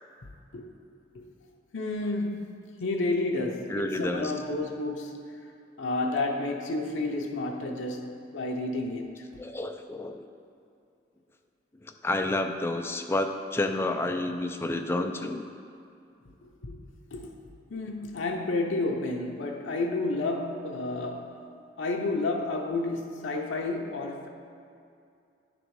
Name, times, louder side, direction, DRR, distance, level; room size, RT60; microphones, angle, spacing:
voice 1, 1.7-5.2 5.8-9.2 16.4-16.8 17.1-17.3 17.7-21.4 21.8-24.3, left 2 dB, 85° left, 0.6 m, -31 dB
voice 2, 3.7-4.3 9.4-10.2 11.8-15.4, left 2 dB, 15° left, 0.3 m, -30 dB
10.0 x 3.9 x 4.7 m
head